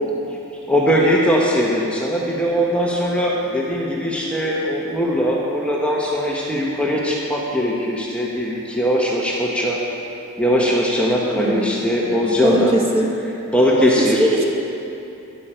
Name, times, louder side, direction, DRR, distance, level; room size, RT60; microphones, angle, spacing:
voice 1, 0.7-9.8 10.4-12.7 13.5-14.3, equal, 5° left, -3 dB, 1.1 m, -20 dB
voice 2, 11.3-11.8 12.4-13.1 13.8-14.4, right 1 dB, 25° right, -1 dB, 1.2 m, -20 dB
12.0 x 11.5 x 4.4 m, 2.9 s
head